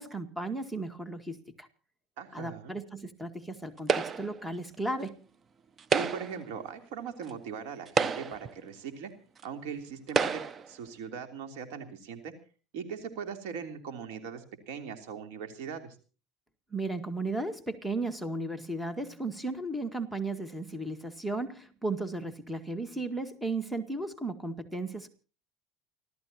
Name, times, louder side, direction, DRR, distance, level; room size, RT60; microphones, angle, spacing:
voice 1, 0.0-1.7 2.3-5.2 16.7-25.1, right 2 dB, 5° right, 9 dB, 2.0 m, -35 dB
voice 2, 2.2-2.8 5.9-9.1 9.4-10.4 10.7-12.3 12.7-15.9, right 7 dB, 80° right, 6 dB, 3.2 m, -40 dB
sound 1, 3.9-4.4 5.8-6.4 7.3-7.4 7.9-8.5 9.4-9.5 10.1-10.7, right 5 dB, 35° right, 0.7 m, -29 dB
29.5 x 13.5 x 2.9 m, 0.37 s
supercardioid pair, 100°, 0 cm